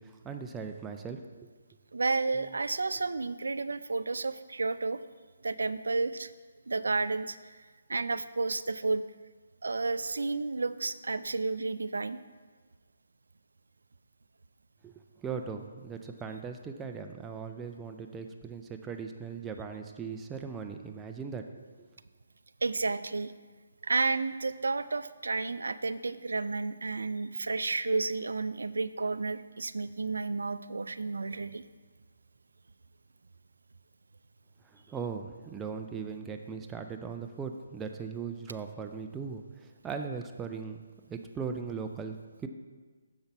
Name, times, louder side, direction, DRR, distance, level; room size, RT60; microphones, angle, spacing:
voice 1, 0.0-1.5 2.3-2.5 14.8-14.9 15.2-21.6 34.6-40.8 41.1-42.5, right 5 dB, 10° right, 5 dB, 0.3 m, -39 dB
voice 2, 1.9-5.0 5.4-6.3 6.7-7.4 7.9-9.0 9.6-12.2 22.6-23.3 23.8-31.6, right 3 dB, 85° right, 14 dB, 0.3 m, -31 dB
6.8 x 5.7 x 4.4 m, 1.4 s
hypercardioid pair, 160°, 0 cm